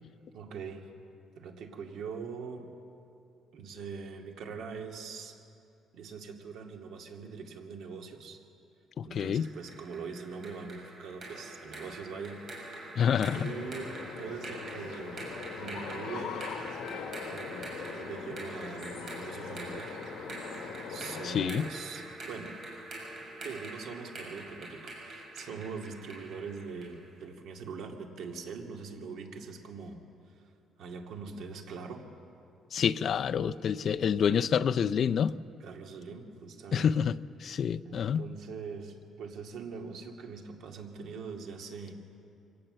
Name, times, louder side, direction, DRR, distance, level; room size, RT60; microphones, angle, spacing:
voice 1, 0.3-0.9 1.4-2.7 3.5-5.4 5.9-8.4 9.0-12.4 12.7-12.9 13.3-15.2 15.6-16.4 17.2-20.0 20.9-22.5 23.4-30.0 30.3-30.5 30.8-32.1 35.6-37.1 37.8-41.9, right 5 dB, 65° right, 2.3 m, -42 dB
voice 2, 9.0-9.5 13.0-13.5 21.2-21.7 32.7-35.3 36.7-38.2, left 7 dB, 45° left, 0.4 m, -28 dB
sound 1, 9.2-27.0, right 2 dB, 40° right, 6.7 m, -45 dB
sound 2, 13.3-21.4, left 6 dB, 65° left, 2.2 m, -41 dB
24.0 x 17.5 x 7.8 m
cardioid pair, 150°, 0 cm